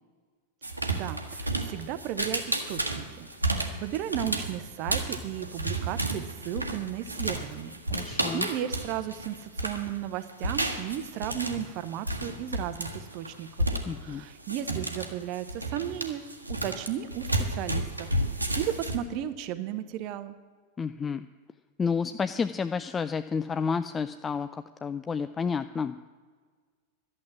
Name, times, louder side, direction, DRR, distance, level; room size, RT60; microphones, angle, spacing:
sound 1, 0.6-10.0 10.3-19.0, right 1 dB, 85° right, 1.2 m, -32 dB
voice 1, 0.9-7.7 8.0-13.7 14.0-16.2 16.5-18.1 18.6-20.4, right 11 dB, 40° right, 12 dB, 0.9 m, -35 dB
voice 2, 7.9-8.5 13.9-14.3 20.8-21.3 21.8-26.0, left 5 dB, 20° left, 11 dB, 0.4 m, -30 dB
11.5 x 7.7 x 9.8 m, 1.5 s
figure-of-eight pair, 90°, 0 cm